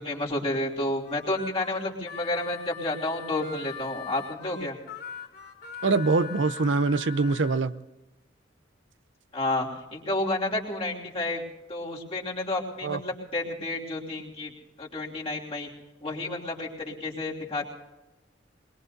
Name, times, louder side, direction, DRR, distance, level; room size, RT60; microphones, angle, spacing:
voice 1, 0.0-4.8 9.3-11.4 11.7-14.5 14.8-15.7 16.0-17.6, left 2 dB, 35° left, 3.1 m, -30 dB
Harmonica, 1.0-7.6, left 6 dB, 55° left, 2.7 m, -41 dB
voice 2, 5.8-7.7 12.8-13.0, right 3 dB, 85° right, 0.6 m, -24 dB
23.0 x 21.5 x 2.7 m
head